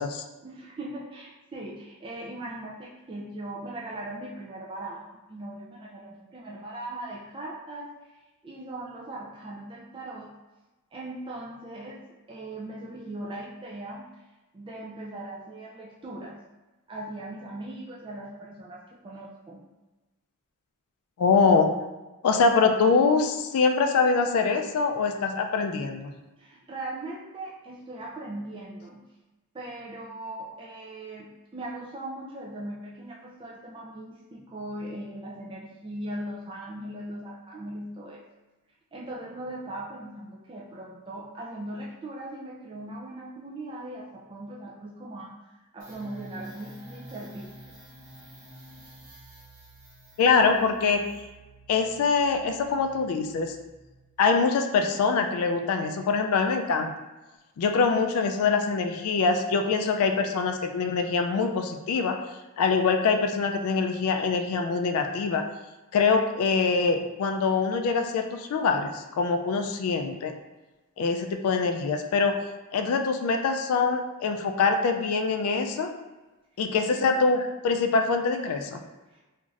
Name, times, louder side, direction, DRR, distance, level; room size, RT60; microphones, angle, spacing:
voice 1, 0.4-5.0 5.3-7.9 8.4-10.3 10.9-12.0 12.3-14.0 14.5-16.4 16.9-19.6 26.4-29.0 29.5-38.2 38.9-47.7 76.9-77.2 79.1-79.2, right 1 dB, 20° right, -5 dB, 0.3 m, -39 dB
voice 2, 21.2-21.8 22.2-26.1 50.2-51.1 51.7-53.6 54.2-56.9 57.6-62.2 62.6-65.4 65.9-70.3 71.0-72.4 72.7-75.9 76.6-78.8, left 4 dB, 70° left, 5 dB, 0.3 m, -24 dB
sound 1, 45.8-54.2, right 1 dB, 40° right, 1.0 m, -50 dB
2.5 x 2.4 x 3.1 m, 1.1 s
head